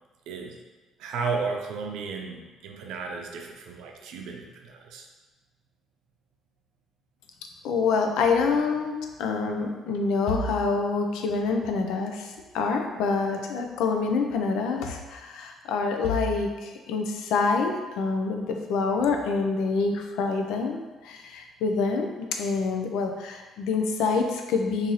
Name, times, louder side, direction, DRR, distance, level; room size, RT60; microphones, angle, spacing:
voice 1, 0.3-0.6 1.0-5.0, right 4 dB, 85° right, 2 dB, 0.5 m, -34 dB
voice 2, 7.6-24.9, left 4 dB, 85° left, 4 dB, 0.4 m, -26 dB
3.0 x 2.6 x 3.9 m, 1.3 s
cardioid pair, 180°, 0 cm